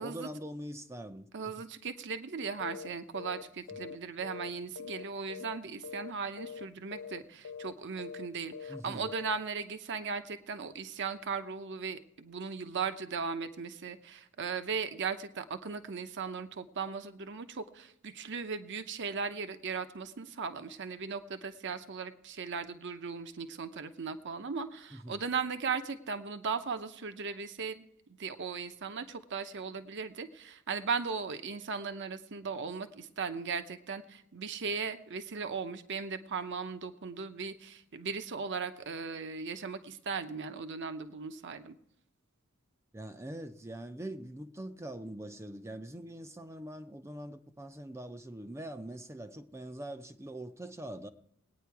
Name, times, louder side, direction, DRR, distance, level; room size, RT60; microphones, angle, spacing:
voice 1, 0.0-1.7 3.7-3.8 8.7-9.1 24.9-25.2 42.9-51.1, right 1 dB, 15° right, 0.5 m, -43 dB
voice 2, 1.3-27.8 28.2-41.8, right 5 dB, 55° right, 0.8 m, -37 dB
sound 1, 2.6-2.9 3.1-3.4 3.7-5.0 5.3-5.6 5.8-6.1 6.4-6.6 6.9-7.2 7.4-7.7 8.0-8.3 8.5-8.8 9.1-9.3, left 6 dB, 85° left, 0.4 m, -43 dB
20.0 x 9.4 x 4.7 m
head